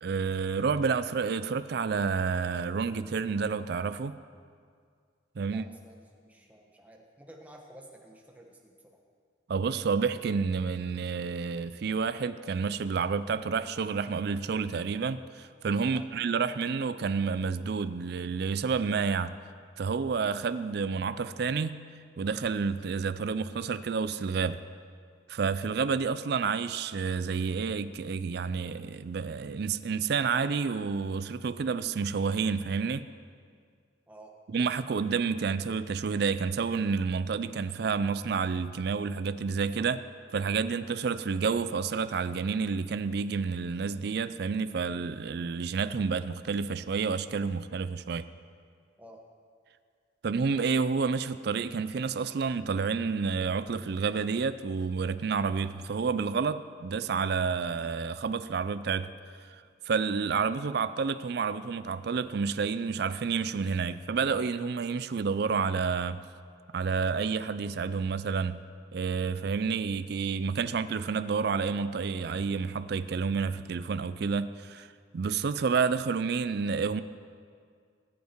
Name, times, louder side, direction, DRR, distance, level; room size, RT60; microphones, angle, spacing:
voice 1, 0.0-4.2 5.4-5.6 9.5-19.4 19.8-21.8 22.2-24.6 25.3-33.1 34.5-40.0 40.3-48.3 50.2-59.1 59.5-59.6 59.9-66.2 66.7-68.6 68.9-74.9 75.1-77.0, right 5 dB, 55° right, 0.4 m, -29 dB
voice 2, 5.5-9.0 15.9-16.1 34.1-34.3 49.0-49.2, right 1 dB, 10° right, 1.2 m, -52 dB
19.5 x 8.4 x 4.5 m
head